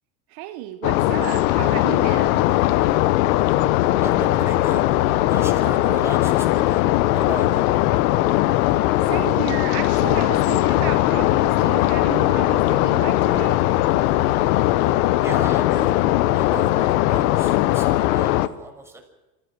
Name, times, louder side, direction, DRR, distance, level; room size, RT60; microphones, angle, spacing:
voice 1, 0.3-2.4 9.1-13.7, right 14 dB, 50° right, 1.3 m, -33 dB
sound 1, 0.8-18.5, left 15 dB, 60° left, 1.2 m, -19 dB
voice 2, 4.0-4.9 5.3-6.9 7.1-7.7 15.2-16.0 16.3-19.0, right 1 dB, 5° right, 6.4 m, -35 dB
27.0 x 16.0 x 6.5 m
hypercardioid pair, 105°, 48 cm